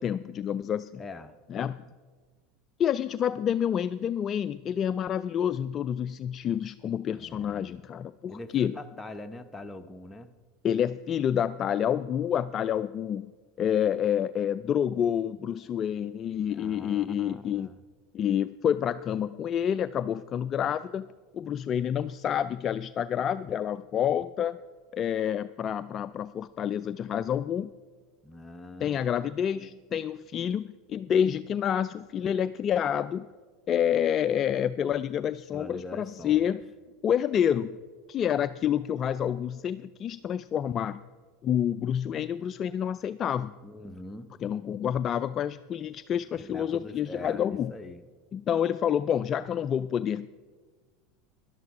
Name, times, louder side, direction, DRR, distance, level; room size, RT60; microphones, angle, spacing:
voice 1, 0.0-1.0 1.5-1.8 2.8-8.7 10.6-13.3 13.6-17.7 18.1-21.1 21.3-24.6 24.9-27.7 28.8-33.3 33.7-36.6 37.0-37.8 38.1-41.0 41.4-43.5 44.4-47.7 48.3-50.3, left 9 dB, 40° left, 13 dB, 0.3 m, -28 dB
voice 2, 1.0-1.3 7.2-7.8 8.3-10.3 16.5-17.8 28.2-29.2 35.5-36.5 43.6-44.3 46.3-48.0, left 2 dB, 15° left, 7 dB, 0.9 m, -43 dB
12.5 x 11.5 x 4.8 m, 1.4 s
hypercardioid pair, 85°, 0 cm